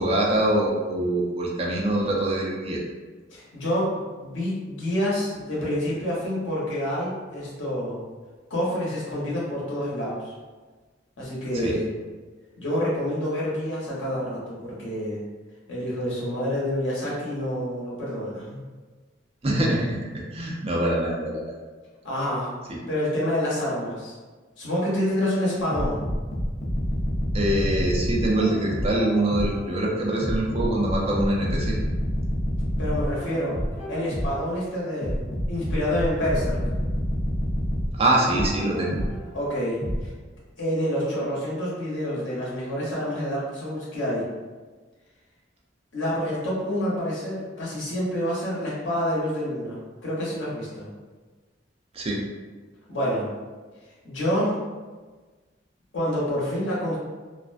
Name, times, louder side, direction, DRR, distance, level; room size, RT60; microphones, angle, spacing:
voice 1, 0.0-2.8 11.5-11.7 19.4-21.5 22.7-22.8 27.3-31.8 37.9-39.0 51.9-52.2, right 1 dB, 30° right, -3 dB, 0.4 m, -24 dB
voice 2, 3.3-8.0 8.5-10.3 11.2-11.9 12.6-15.2 15.7-18.6 22.0-22.5 22.9-24.1 24.6-26.0 32.8-33.6 33.9-36.6 39.3-40.1 40.6-44.3 45.9-50.9 52.9-53.3 54.0-54.6 55.9-57.0, equal, 85° left, -7 dB, 0.9 m, -27 dB
sound 1, 25.7-29.7 30.2-34.5 35.0-39.3 39.8-40.0, equal, 35° left, 0.6 m, -27 dB
2.4 x 2.1 x 2.4 m, 1.3 s
head